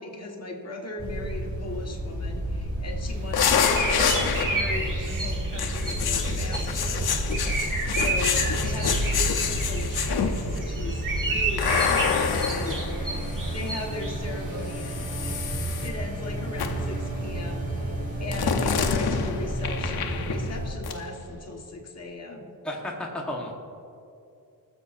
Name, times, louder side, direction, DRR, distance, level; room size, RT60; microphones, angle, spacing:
voice 1, 0.0-4.1 4.5-7.2 7.9-15.4 15.8-17.9 18.2-22.5, left 2 dB, 45° left, 0 dB, 1.4 m, -38 dB
sound 1, 1.0-20.7, right 1 dB, 30° right, 2.1 m, -31 dB
sound 2, 3.1-14.7, right 3 dB, 60° right, 1.5 m, -32 dB
sound 3, 3.3-4.9 5.6-10.6 11.6-13.7 14.7-15.9 16.6-17.0 18.3-20.6 20.8-21.0, left 7 dB, 90° left, 0.8 m, -27 dB
voice 2, 22.6-23.5, left 1 dB, 5° left, -2 dB, 1.1 m, -32 dB
20.5 x 7.3 x 2.5 m, 2.6 s
wide cardioid pair, 125°, 37 cm